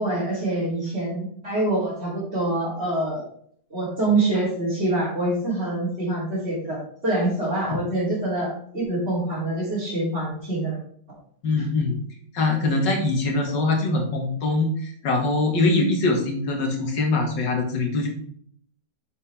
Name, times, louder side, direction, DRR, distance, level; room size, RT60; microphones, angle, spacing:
voice 1, 0.0-3.2 3.7-10.8, right 2 dB, 35° right, -11 dB, 3.5 m, -25 dB
voice 2, 11.4-12.0 12.3-18.1, left 2 dB, 75° left, 2 dB, 2.3 m, -23 dB
7.1 x 6.6 x 3.5 m, 0.64 s
omnidirectional pair, 1.9 m